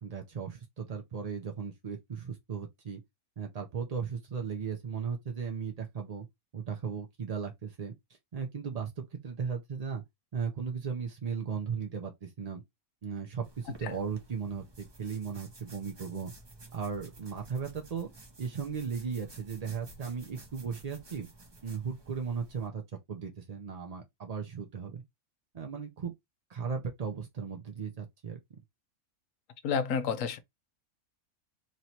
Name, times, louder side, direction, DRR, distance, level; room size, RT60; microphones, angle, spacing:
voice 1, 0.0-3.0 3.4-6.3 6.5-7.9 8.3-10.0 10.3-12.6 13.0-16.3 16.7-18.1 18.4-21.3 21.6-22.8 23.1-25.0 25.5-26.1 26.5-28.4, right 6 dB, 50° right, 0.4 m, -36 dB
sound 1, 13.4-22.7, right 2 dB, 25° right, 0.7 m, -53 dB
voice 2, 29.6-30.4, left 6 dB, 65° left, 1.1 m, -30 dB
3.1 x 2.7 x 4.3 m
omnidirectional pair, 1.5 m